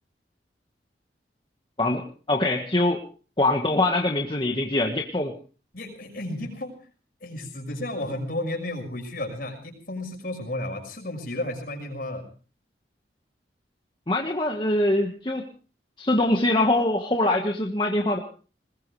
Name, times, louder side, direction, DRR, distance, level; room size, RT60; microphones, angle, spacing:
voice 1, 1.8-3.0 3.4-5.3 14.1-15.5 16.0-18.2, left 2 dB, 25° left, 1 dB, 1.5 m, -23 dB
voice 2, 5.7-6.7 7.2-12.3, left 1 dB, 55° left, 3 dB, 6.0 m, -33 dB
21.0 x 20.5 x 3.3 m, 0.38 s
head